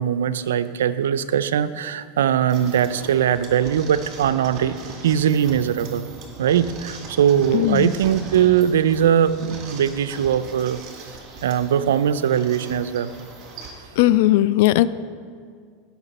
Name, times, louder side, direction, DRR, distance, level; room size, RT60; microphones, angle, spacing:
voice 1, 0.0-4.8 5.0-6.1 6.4-10.8 11.4-13.1, right 9 dB, 90° right, 14 dB, 0.4 m, -20 dB
sound 1, 2.5-13.7, right 3 dB, 45° right, 2.2 m, -40 dB
voice 2, 7.5-7.9 14.0-14.9, left 15 dB, 70° left, 16 dB, 0.3 m, -17 dB
16.0 x 5.9 x 4.1 m, 2.1 s
hypercardioid pair, 110°, 0 cm